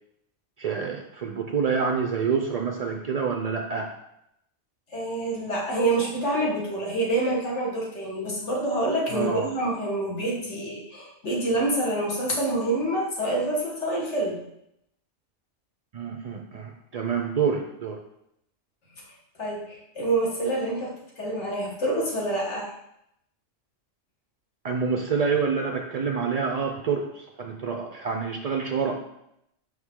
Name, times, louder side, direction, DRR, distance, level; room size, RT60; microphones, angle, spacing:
voice 1, 0.6-3.9 9.1-9.5 15.9-18.0 24.6-29.1, right 5 dB, 60° right, 3 dB, 0.4 m, -27 dB
voice 2, 4.9-14.4 19.4-22.7, right 1 dB, 70° left, -3 dB, 1.8 m, -27 dB
5.7 x 4.8 x 3.7 m, 0.79 s
omnidirectional pair, 1.2 m